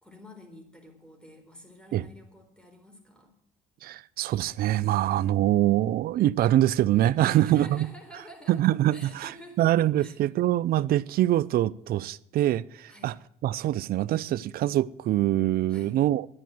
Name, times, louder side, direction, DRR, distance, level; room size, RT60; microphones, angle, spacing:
voice 1, 0.0-3.3 7.3-8.6 8.9-9.7 10.0-10.2 12.9-13.1 15.7-16.0, equal, 5° left, 4.2 m, -49 dB
voice 2, 3.8-7.9 8.5-9.3 9.6-13.1 13.4-16.3, right 13 dB, 60° right, 0.5 m, -24 dB
11.0 x 10.0 x 7.7 m
cardioid pair, 110°, 17 cm